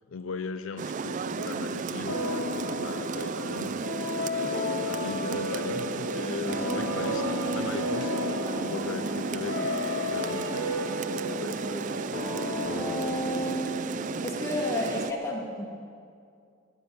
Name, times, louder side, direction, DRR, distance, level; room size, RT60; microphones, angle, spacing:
voice 1, 0.1-12.0, left 5 dB, 70° left, 10 dB, 0.5 m, -39 dB
Rain, 0.8-15.1, right 5 dB, 40° right, 0.4 m, -34 dB
sound 1, 2.1-14.5, left 1 dB, 50° left, 2.5 m, -33 dB
sound 2, 5.5-12.1, right 3 dB, 65° right, 1.2 m, -41 dB
voice 2, 14.2-15.6, left 2 dB, 15° left, -2 dB, 2.3 m, -32 dB
19.5 x 6.7 x 9.2 m, 2.3 s
head